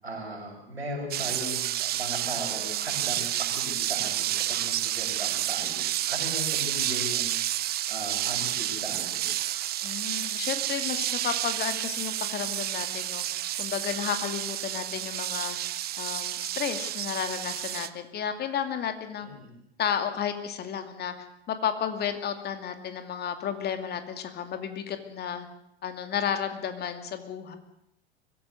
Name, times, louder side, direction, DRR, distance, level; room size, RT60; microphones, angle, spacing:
voice 1, 0.0-7.3 7.9-9.3 19.2-19.5, equal, 85° right, 0 dB, 7.1 m, -38 dB
sound 1, 1.1-17.9, right 13 dB, 30° right, 1.0 m, -30 dB
voice 2, 9.8-13.2 13.6-15.6 16.0-19.3 19.8-25.5 25.8-27.6, left 8 dB, 30° left, 7 dB, 2.5 m, -32 dB
23.5 x 16.5 x 7.9 m, 0.78 s
figure-of-eight pair, 85°, 31 cm